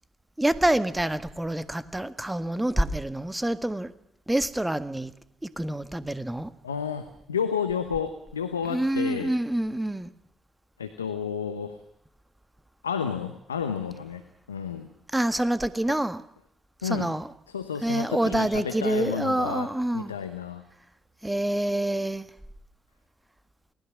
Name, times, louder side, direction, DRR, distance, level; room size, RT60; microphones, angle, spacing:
voice 1, 0.4-3.9 4.3-5.1 5.6-6.5 8.7-10.1 15.1-16.2 16.8-17.3 17.8-20.1 21.2-22.3, right 1 dB, 10° right, 1.8 m, -27 dB
voice 2, 6.6-9.3 10.8-11.8 12.8-14.9 15.9-16.0 16.8-17.1 17.5-20.6, left 7 dB, 90° left, 0.9 m, -31 dB
29.0 x 19.5 x 6.1 m
figure-of-eight pair, 45°, 0 cm